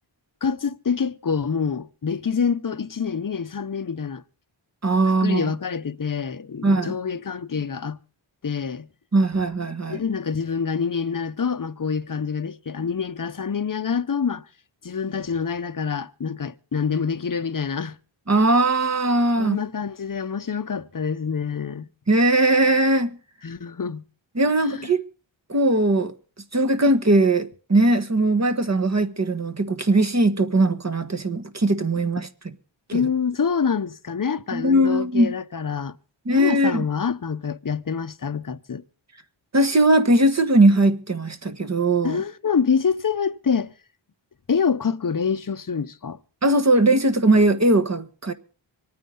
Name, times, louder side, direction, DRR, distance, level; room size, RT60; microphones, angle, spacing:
voice 1, 0.4-4.2 5.2-8.0 8.4-8.9 9.9-14.5 14.8-18.0 19.4-21.9 23.4-24.0 24.7-24.9 32.9-36.0 36.3-38.8 42.0-43.7 44.5-46.2, left 6 dB, 45° left, 0.9 m, -26 dB
voice 2, 4.8-5.5 6.6-6.9 9.1-10.0 18.3-19.6 22.1-23.2 24.3-25.0 25.5-26.1 26.5-32.3 32.9-33.1 34.5-35.3 36.2-36.8 39.5-42.2 46.4-48.3, right 2 dB, 35° right, 1.4 m, -19 dB
25.5 x 9.4 x 3.9 m
wide cardioid pair, 85°, 47 cm